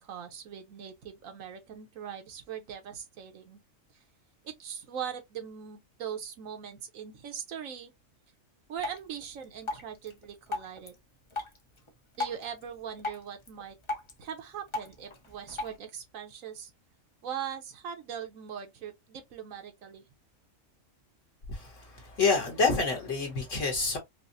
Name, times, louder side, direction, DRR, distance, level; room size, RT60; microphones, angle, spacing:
voice 1, 0.0-3.6 4.4-7.9 8.7-11.0 12.2-13.8 14.2-16.7 17.2-20.0, right 8 dB, 75° right, 1.2 m, -40 dB
Drip, 8.8-15.8, left 3 dB, 30° left, 0.6 m, -40 dB
voice 2, 21.5-24.0, left 4 dB, 65° left, 1.3 m, -28 dB
5.1 x 2.0 x 2.5 m
omnidirectional pair, 1.4 m